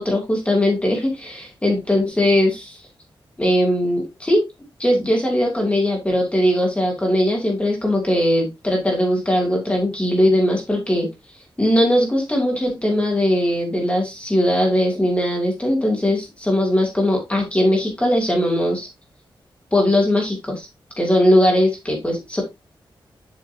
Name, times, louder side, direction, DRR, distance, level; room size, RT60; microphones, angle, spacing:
voice 1, 0.0-2.8 3.4-4.4 4.8-11.1 11.6-18.9 19.7-20.7 21.0-22.4, left 1 dB, 15° left, 0 dB, 2.8 m, -19 dB
8.0 x 5.9 x 2.8 m, 0.21 s
wide cardioid pair, 145°, 9 cm